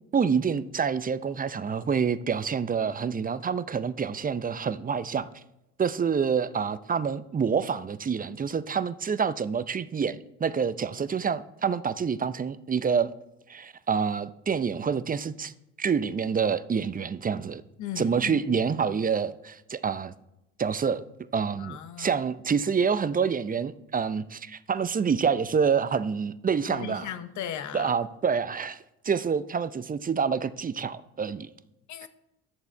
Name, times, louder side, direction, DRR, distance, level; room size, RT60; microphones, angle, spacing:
voice 1, 0.1-5.3 5.8-13.1 13.5-15.5 15.8-17.6 18.0-20.1 20.6-21.0 21.3-27.1 27.7-28.8 29.0-31.5, right 6 dB, 25° right, 0.6 m, -27 dB
voice 2, 17.8-18.4 21.6-22.2 26.7-27.9 31.9-32.1, left 9 dB, 65° left, 0.9 m, -37 dB
10.5 x 7.0 x 4.4 m
supercardioid pair, 65°, 33 cm